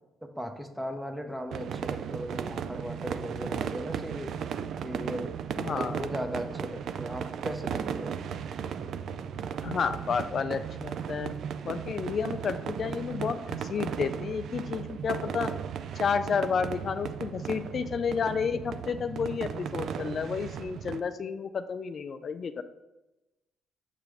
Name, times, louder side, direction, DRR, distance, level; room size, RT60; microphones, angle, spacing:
voice 1, 0.2-4.3 4.8-5.3 5.7-8.2, equal, 10° right, 6 dB, 0.8 m, -37 dB
sound 1, 1.5-21.0, right 7 dB, 70° right, 0.3 m, -36 dB
voice 2, 5.6-6.1 9.6-11.3 11.6-15.5 16.0-22.6, left 6 dB, 50° left, 10 dB, 0.3 m, -31 dB
6.6 x 3.0 x 4.9 m, 0.99 s
cardioid pair, 90°, 0 cm